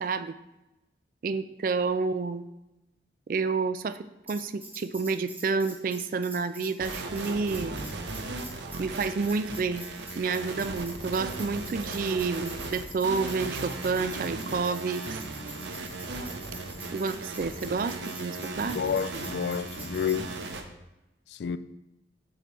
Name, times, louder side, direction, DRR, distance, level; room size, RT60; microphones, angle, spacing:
voice 1, 0.0-0.3 1.2-2.4 3.3-7.8 8.8-9.9 10.2-15.2 16.9-18.8, right 4 dB, 50° right, 0.3 m, -29 dB
Tambourine, 4.3-20.2, right 1 dB, 10° right, 1.0 m, -46 dB
sound 1, 6.8-20.6, right 3 dB, 80° right, 0.7 m, -37 dB
voice 2, 18.7-20.3 21.3-21.6, left 7 dB, 70° left, 0.3 m, -29 dB
7.6 x 3.2 x 5.2 m
head